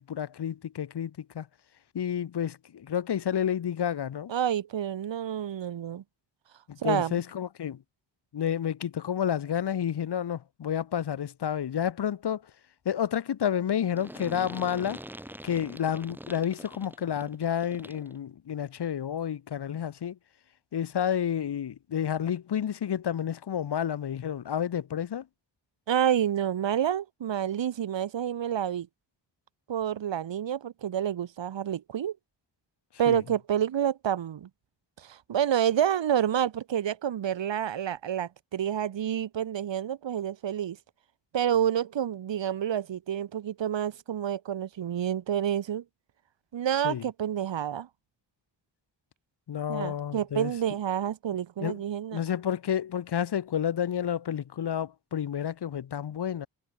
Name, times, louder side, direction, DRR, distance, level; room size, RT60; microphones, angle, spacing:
voice 1, 0.0-1.5 1.9-4.3 6.7-7.8 8.3-12.4 12.9-15.0 15.4-20.2 20.7-25.3 33.1-33.2 46.8-47.1 49.5-50.5 51.6-51.8 52.1-56.5, left 9 dB, 65° left, 1.8 m, -30 dB
voice 2, 4.3-6.0 6.8-7.2 25.9-28.9 29.7-32.2 33.0-34.5 35.0-40.8 41.3-45.8 46.5-47.9 49.7-52.2, right 10 dB, 85° right, 2.2 m, -28 dB
sound 1, 14.0-18.2, right 1 dB, 5° right, 4.4 m, -44 dB
wide cardioid pair, 175°, 43 cm